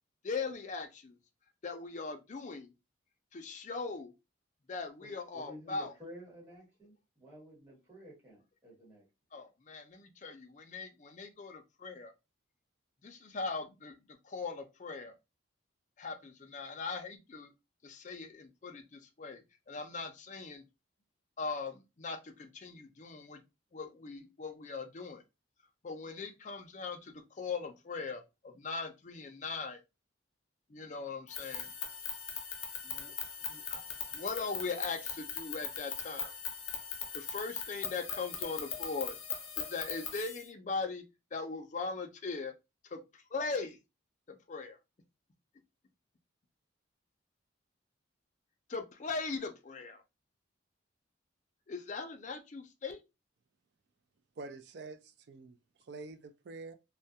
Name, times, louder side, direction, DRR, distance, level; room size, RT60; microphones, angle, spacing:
voice 1, 0.2-1.2 1.6-2.7 3.3-4.1 4.7-5.9 9.3-12.1 13.0-14.0 14.2-15.1 16.0-17.5 17.8-19.4 19.7-20.6 21.4-23.4 23.7-25.2 25.8-29.8 30.7-31.7 32.8-33.1 33.4-33.8 34.1-36.3 37.1-39.2 39.6-41.0 41.3-42.5 42.9-43.8 44.3-44.8 48.7-50.0 51.7-53.0, left 4 dB, 35° left, 0.4 m, -40 dB
voice 2, 5.0-9.1, equal, 10° right, 1.2 m, -52 dB
sound 1, 31.3-40.5, left 7 dB, 90° left, 0.6 m, -40 dB
voice 3, 54.4-55.6 55.9-56.7, right 3 dB, 55° right, 0.3 m, -46 dB
2.3 x 2.1 x 2.7 m
head